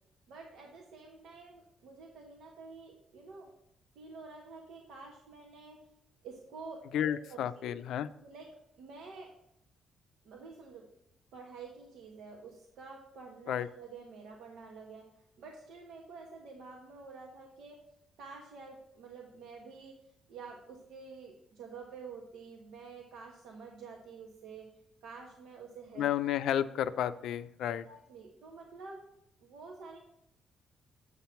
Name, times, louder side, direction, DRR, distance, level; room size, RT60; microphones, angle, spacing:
voice 1, 0.3-3.5 3.9-5.8 6.2-7.7 8.2-8.5 8.8-9.3 10.2-10.9 11.3-15.1 15.4-17.8 18.2-20.0 20.3-24.7 25.0-26.1 27.9-29.1 29.4-30.0, right 4 dB, 80° right, 0 dB, 1.2 m, -49 dB
voice 2, 6.9-8.1 13.5-13.7 26.0-27.8, left 10 dB, 80° left, 13 dB, 0.4 m, -32 dB
7.8 x 5.8 x 5.7 m, 0.79 s
cardioid pair, 90°, 0 cm